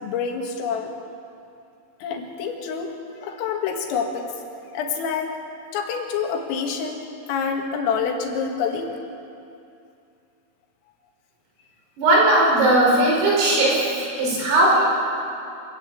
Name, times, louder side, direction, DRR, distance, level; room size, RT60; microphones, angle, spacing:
voice 1, 0.0-0.9 2.0-2.9 3.2-4.3 4.7-5.4 5.7-8.9, left 6 dB, 80° left, 2 dB, 4.6 m, -27 dB
voice 2, 12.0-14.8, right 1 dB, 80° right, -3 dB, 8.2 m, -18 dB
25.5 x 15.0 x 8.7 m, 2.6 s
omnidirectional pair, 5.9 m